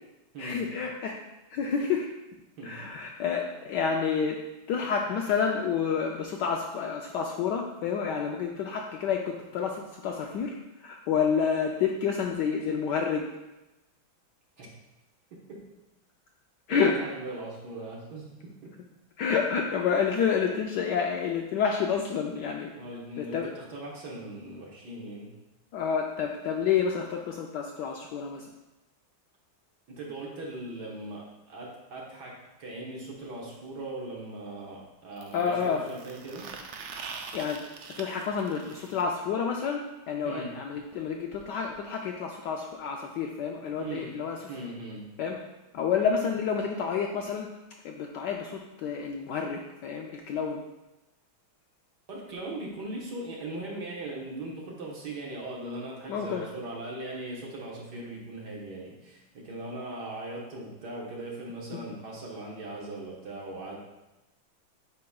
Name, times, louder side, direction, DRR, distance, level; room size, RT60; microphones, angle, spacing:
voice 1, 0.4-1.2 1.5-2.1 2.6-4.4 4.7-10.5 10.8-13.3 16.7-17.0 19.2-22.7 23.2-23.5 25.7-28.5 35.3-35.8 37.3-37.6 38.0-44.4 45.2-45.4 45.7-47.5 47.8-50.6 56.1-56.5, left 6 dB, 75° left, 1 dB, 1.0 m, -29 dB
voice 2, 15.3-15.6 16.7-18.7 22.7-25.3 29.9-36.5 40.2-40.5 43.8-44.1 44.5-45.0 52.1-63.8, right 2 dB, 55° right, -3 dB, 1.7 m, -39 dB
sound 1, 33.2-33.3 35.2-39.0 40.9-41.0 41.3-41.4 41.7-41.8 42.7-42.8, right 5 dB, 75° right, 0.9 m, -43 dB
8.4 x 5.4 x 2.3 m, 1.0 s
omnidirectional pair, 2.3 m